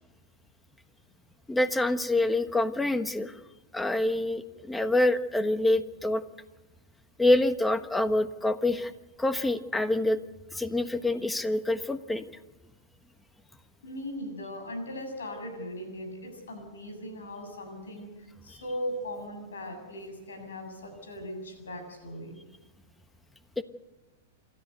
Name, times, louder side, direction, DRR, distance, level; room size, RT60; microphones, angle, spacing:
voice 1, 1.5-3.4 3.7-6.2 7.2-8.9 9.2-10.2 10.5-12.2 23.6-23.7, left 1 dB, 10° left, 11 dB, 1.3 m, -26 dB
voice 2, 13.8-22.4, equal, 85° left, 5 dB, 7.6 m, -39 dB
28.0 x 13.0 x 8.1 m, 1.1 s
hypercardioid pair, 115°, 0 cm